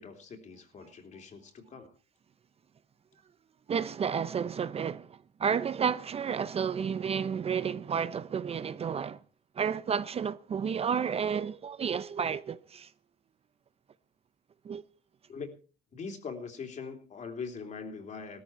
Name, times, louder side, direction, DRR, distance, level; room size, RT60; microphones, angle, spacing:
voice 1, 0.0-1.9 15.3-15.6 15.9-18.4, left 5 dB, 45° left, 3.3 m, -42 dB
voice 2, 3.7-9.2 9.5-12.9 14.6-14.8, right 7 dB, 35° right, 0.7 m, -31 dB
18.0 x 13.5 x 4.6 m
cardioid pair, 110°, 17 cm